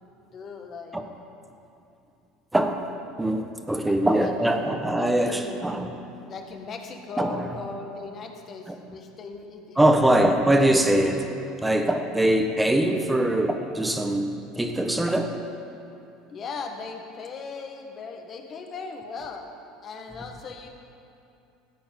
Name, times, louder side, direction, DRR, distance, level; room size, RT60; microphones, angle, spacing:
voice 1, 0.3-1.0 3.8-5.6 6.2-10.4 16.3-19.5 19.8-20.7, left 4 dB, 45° left, 4 dB, 1.6 m, -38 dB
voice 2, 2.5-2.8 3.2-6.0 7.2-7.5 8.7-8.8 9.8-11.3 11.6-15.4, right 1 dB, 10° right, 5 dB, 1.2 m, -22 dB
14.5 x 8.6 x 5.4 m, 2.7 s
hypercardioid pair, 80°, 0 cm